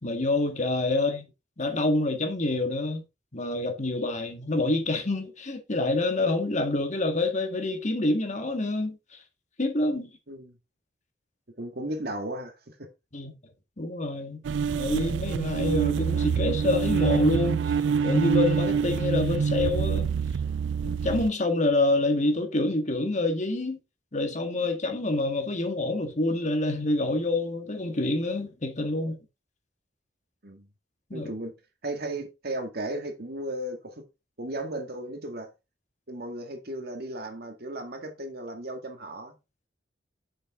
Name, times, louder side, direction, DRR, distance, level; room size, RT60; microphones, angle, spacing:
voice 1, 0.0-1.2 1.6-3.0 3.3-9.0 9.6-10.1 13.1-13.3 13.8-14.4 14.7-20.1 20.8-23.8 24.1-29.2 31.1-31.3, left 2 dB, 40° left, 1.7 m, -27 dB
voice 2, 11.6-12.9 30.4-30.7 31.1-31.5 31.8-34.1 34.4-35.5 36.1-39.4, right 1 dB, 60° right, 1.9 m, -35 dB
sound 1, 14.4-21.3, right 6 dB, 80° right, 0.3 m, -26 dB
7.7 x 6.8 x 3.7 m
head